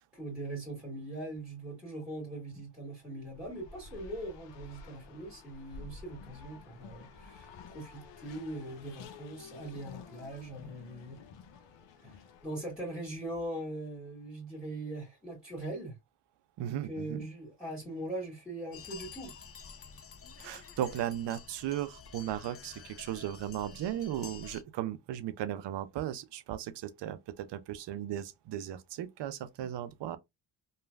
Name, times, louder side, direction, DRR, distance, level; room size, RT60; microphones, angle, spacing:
voice 1, 0.1-11.2 12.0-15.9 16.6-19.3, right 1 dB, ahead, 1.7 m, -41 dB
Race car auto racing, 3.2-12.9, left 5 dB, 85° left, 0.7 m, -51 dB
voice 2, 16.6-17.2 20.4-30.2, right 11 dB, 75° right, 0.5 m, -36 dB
sound 1, 18.7-24.6, left 6 dB, 35° left, 0.4 m, -49 dB
3.1 x 2.4 x 2.2 m
cardioid pair, 80°, 43 cm